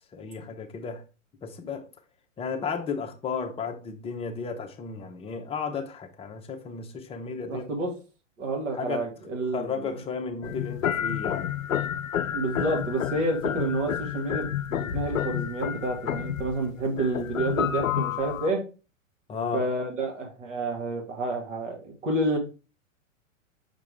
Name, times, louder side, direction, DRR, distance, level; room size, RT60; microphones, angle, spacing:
voice 1, 0.1-1.0 1.4-1.9 2.4-7.7 8.7-9.0 9.5-11.5 19.3-19.6, left 5 dB, 15° left, 0.8 m, -33 dB
voice 2, 7.5-7.9 8.4-9.8 12.3-18.6 19.5-22.4, right 2 dB, 65° right, 2.3 m, -29 dB
lo-fi-detuned-piano, 10.4-18.5, left 9 dB, 85° left, 0.5 m, -30 dB
5.8 x 4.8 x 3.4 m
figure-of-eight pair, 105°, 39 cm